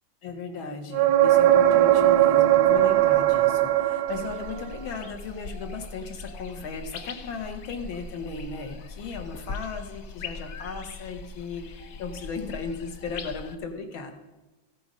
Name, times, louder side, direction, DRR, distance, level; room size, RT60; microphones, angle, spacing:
voice 1, 0.2-14.1, left 5 dB, 85° left, 5 dB, 2.0 m, -36 dB
sound 1, 0.9-4.7 8.4-8.5, right 13 dB, 80° right, 1.3 m, -19 dB
sound 2, 4.1-13.5, left 3 dB, 60° left, 0.9 m, -40 dB
14.5 x 6.9 x 5.2 m, 1.1 s
omnidirectional pair, 2.2 m